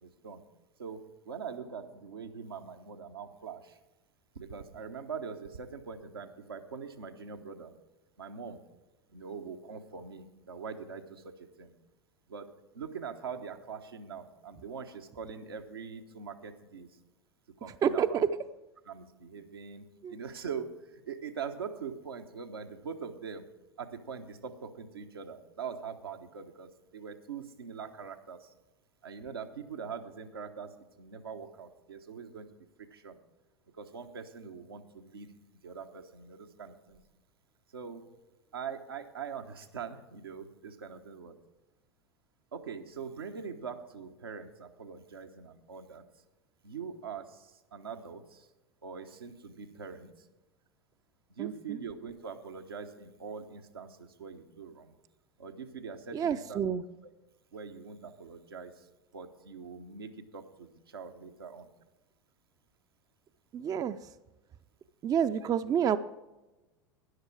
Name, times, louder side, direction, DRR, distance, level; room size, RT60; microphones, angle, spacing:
voice 1, 0.0-0.4 0.8-3.8 4.3-7.7 8.2-8.6 9.1-11.7 12.3-16.9 17.6-18.3 18.8-23.5 23.8-28.5 29.0-30.7 31.0-32.5 32.9-33.2 33.8-35.3 35.6-37.0 37.7-38.1 38.5-41.4 42.5-46.0 46.6-48.5 48.8-50.1 51.4-54.9 55.4-56.6 57.5-58.8 59.1-61.7, right 6 dB, 80° right, 4 dB, 1.1 m, -43 dB
voice 2, 17.8-18.3 20.0-20.2 51.4-51.5 56.1-56.8 63.5-64.0 65.0-66.0, right 8 dB, 30° right, 12 dB, 0.5 m, -28 dB
13.0 x 10.5 x 4.8 m, 1.0 s
figure-of-eight pair, 80°, 12 cm